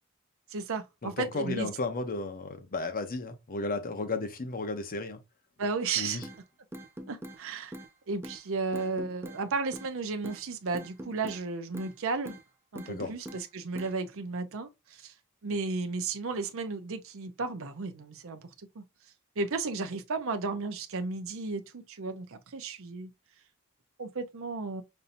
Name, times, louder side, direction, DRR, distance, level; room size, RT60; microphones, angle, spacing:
voice 1, 0.5-1.7 5.6-6.2 7.1-7.8 8.1-12.3 12.7-15.1 15.4-18.4 18.8-18.9 19.4-23.1 24.0-24.8, right 4 dB, 65° right, 0.6 m, -34 dB
voice 2, 1.0-5.2 6.0-6.2 12.9-13.1, left 3 dB, 40° left, 0.8 m, -34 dB
sound 1, 6.2-6.4 6.7-7.4 7.7-7.9 8.2-8.4 8.7-9.4 9.7-9.9 10.2-10.4 10.7-11.4 11.7-11.9 12.2-12.4 12.7-13.4 13.7-13.9, right 1 dB, 10° right, 0.5 m, -42 dB
5.4 x 2.7 x 2.6 m
head